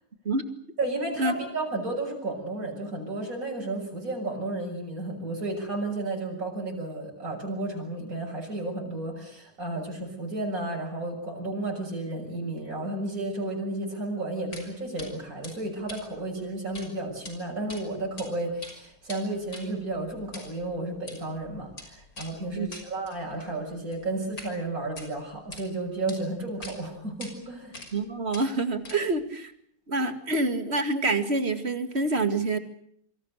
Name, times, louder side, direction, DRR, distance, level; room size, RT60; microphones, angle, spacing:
voice 1, 0.8-27.8, right 2 dB, 60° right, -1 dB, 7.1 m, -32 dB
sound 1, 14.5-14.7 15.0-15.1 15.4-16.9 17.1-17.3 17.7-18.3 18.5-24.5 24.8-25.6 26.1-26.2 26.6-26.8 27.2-27.3 27.7-28.0 28.3-29.2, left 2 dB, 65° left, 6.2 m, -44 dB
voice 2, 27.9-29.5 29.9-32.6, right 2 dB, 40° right, 9 dB, 2.5 m, -27 dB
27.5 x 25.0 x 6.5 m, 0.68 s
omnidirectional pair, 1.6 m